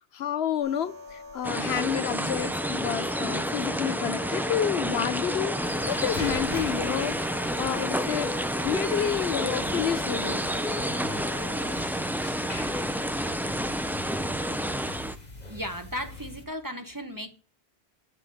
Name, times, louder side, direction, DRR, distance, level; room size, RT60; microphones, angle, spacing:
voice 1, 0.1-7.2 7.6-8.3 8.6-10.4, left 9 dB, 70° left, 0.8 m, -29 dB
sound 1, 0.6-11.8, left 2 dB, 70° right, 2.4 m, -44 dB
sound 2, 1.4-15.2, equal, 5° right, 0.3 m, -29 dB
sound 3, 5.6-16.4, left 1 dB, 40° left, 1.9 m, -43 dB
voice 2, 15.5-17.3, equal, 20° right, 1.0 m, -35 dB
7.9 x 6.3 x 6.3 m
omnidirectional pair, 1.1 m